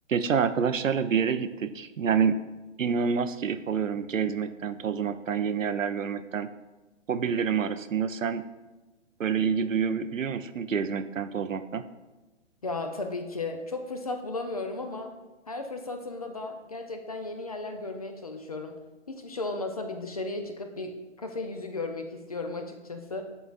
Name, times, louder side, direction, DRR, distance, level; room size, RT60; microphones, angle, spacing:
voice 1, 0.1-2.4 2.8-6.5 7.1-8.4 9.2-11.8, right 6 dB, 85° right, 11 dB, 0.5 m, -27 dB
voice 2, 12.6-15.1 15.5-18.8 19.1-23.2, left 3 dB, 30° left, 6 dB, 0.4 m, -35 dB
11.0 x 3.9 x 2.4 m, 1.1 s
figure-of-eight pair, 135°, 38 cm